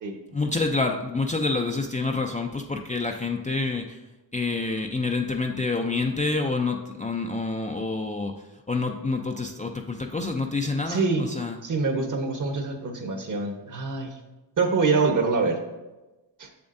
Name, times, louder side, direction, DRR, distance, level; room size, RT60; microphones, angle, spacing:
voice 1, 0.3-4.0 4.3-11.6, left 3 dB, 20° left, 3 dB, 0.4 m, -28 dB
voice 2, 10.9-11.3 11.6-14.1 14.6-15.6 16.4-16.5, right 4 dB, 45° right, 4 dB, 1.2 m, -25 dB
7.1 x 6.9 x 2.6 m, 1.1 s
cardioid pair, 75°, 43 cm